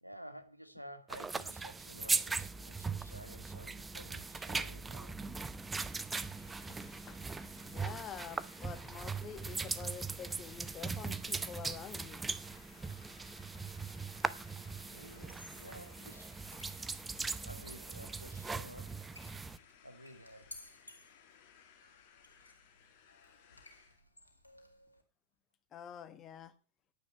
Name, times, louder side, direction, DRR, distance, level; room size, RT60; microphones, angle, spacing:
voice 1, 0.0-5.2 14.8-16.4 17.5-19.0 19.8-20.5, equal, 90° right, 1.4 m, -52 dB
sound 1, 1.1-19.6, right 4 dB, 10° right, 0.7 m, -40 dB
sound 2, 4.7-24.0, left 8 dB, 45° left, 2.5 m, -62 dB
voice 2, 7.6-12.2 25.7-26.5, left 8 dB, 30° left, 1.6 m, -47 dB
sound 3, 15.2-25.0, left 2 dB, 80° left, 1.9 m, -59 dB
10.0 x 9.3 x 6.1 m
figure-of-eight pair, 90°, 0 cm